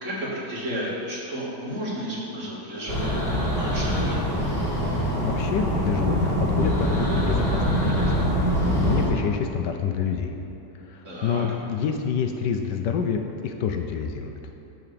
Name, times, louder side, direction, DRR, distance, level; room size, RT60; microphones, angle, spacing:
voice 1, 0.0-3.1 3.6-4.2 11.0-11.4, equal, 45° right, -6 dB, 2.1 m, -32 dB
sound 1, 2.9-9.1, equal, 20° left, 2.2 m, -24 dB
voice 2, 5.2-8.3 8.8-10.4 10.9-14.3, left 7 dB, 75° left, 5 dB, 1.2 m, -27 dB
10.5 x 3.9 x 6.7 m, 2.8 s
omnidirectional pair, 1.9 m